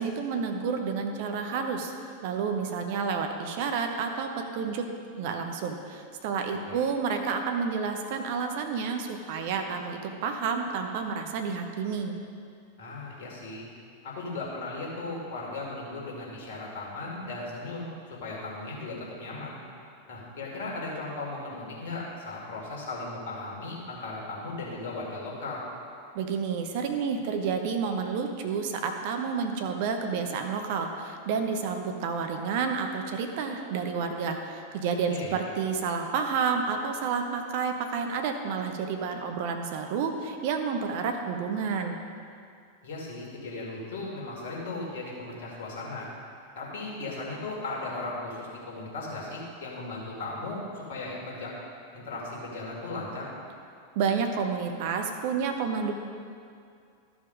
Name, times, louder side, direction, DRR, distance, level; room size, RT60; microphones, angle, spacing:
voice 1, 0.0-1.9 2.2-4.9 5.2-12.2 26.1-42.0 54.0-55.9, right 5 dB, 50° right, 5 dB, 0.8 m, -30 dB
voice 2, 12.8-13.6 14.0-19.6 20.1-25.6 35.1-35.4 42.8-46.1 46.6-51.5 51.9-53.3, left 2 dB, 55° left, -3 dB, 2.4 m, -37 dB
13.0 x 5.0 x 5.2 m, 2.3 s
figure-of-eight pair, 90°, 0 cm